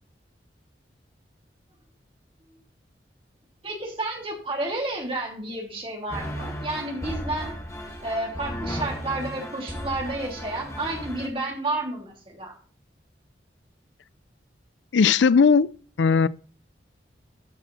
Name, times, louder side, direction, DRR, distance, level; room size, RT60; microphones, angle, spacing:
voice 1, 3.6-7.5 8.0-12.5, right 2 dB, 30° right, 3.1 m, -31 dB
sound 1, 6.1-11.3, equal, 15° left, 1.8 m, -35 dB
voice 2, 14.9-15.7 16.0-16.3, left 5 dB, 85° left, 0.5 m, -17 dB
13.0 x 6.2 x 4.1 m
head